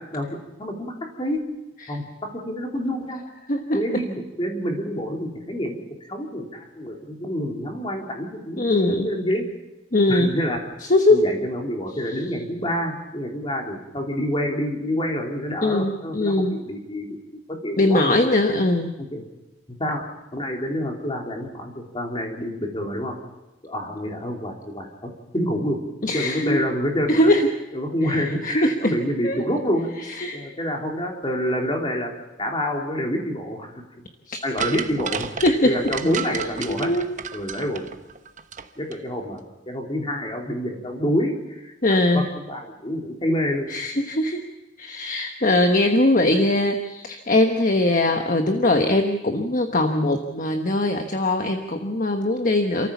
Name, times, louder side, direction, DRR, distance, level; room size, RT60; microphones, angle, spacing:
voice 1, 0.6-1.4 1.9-3.2 3.7-5.8 6.1-9.4 10.1-10.6 11.1-18.4 19.1-19.2 19.8-20.0 20.3-23.1 23.6-25.8 26.1-27.3 27.7-29.9 30.3-32.1 32.4-33.8 34.4-36.9 37.3-37.8 38.8-41.7 42.1-43.7, equal, 25° left, 1 dB, 3.5 m, -27 dB
voice 2, 3.5-3.8 8.6-9.1 9.9-10.3 10.9-11.3 15.6-16.6 17.8-18.9 26.0-26.6 27.1-27.5 28.1-28.9 29.2-29.4 30.2-30.4 34.3-34.4 35.4-35.8 36.7-37.1 41.8-42.3 43.7-44.4 44.8-52.9, left 1 dB, 45° left, 5 dB, 1.2 m, -21 dB
sound 1, 34.6-38.7 38.9-39.0, right 7 dB, 40° right, 1.0 m, -31 dB
27.5 x 14.0 x 7.2 m, 1.0 s
head